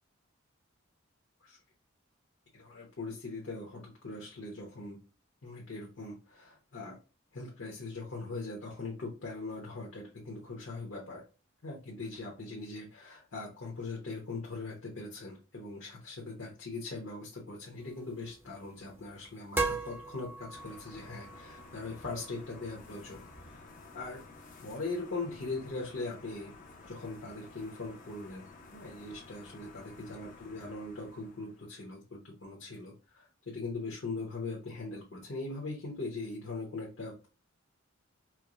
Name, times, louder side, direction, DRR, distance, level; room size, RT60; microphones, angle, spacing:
voice 1, 2.5-5.0 5.4-7.0 7.3-11.2 11.6-23.2 23.5-24.2 24.6-26.5 26.9-28.4 28.7-37.3, left 3 dB, 65° left, -2 dB, 1.0 m, -41 dB
sound 1, 17.8-23.6, right 3 dB, 10° right, 0.6 m, -40 dB
sound 2, 20.5-31.8, left 3 dB, 40° left, 0.6 m, -53 dB
4.5 x 2.1 x 2.4 m, 0.34 s
head